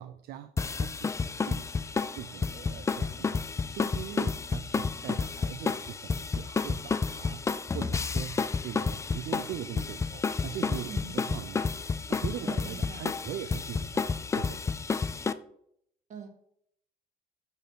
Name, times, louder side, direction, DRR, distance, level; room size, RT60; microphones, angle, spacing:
voice 1, 0.0-1.7 1.9-7.4 7.7-11.7 12.1-14.7, right 11 dB, 70° right, 10 dB, 0.5 m, -41 dB
sound 1, 0.6-15.3, left 4 dB, 15° left, 0.3 m, -31 dB
voice 2, 12.4-13.0 16.1-16.3, right 5 dB, 50° right, 4 dB, 1.9 m, -43 dB
6.8 x 4.0 x 5.5 m, 0.70 s
cardioid pair, 110°, 17 cm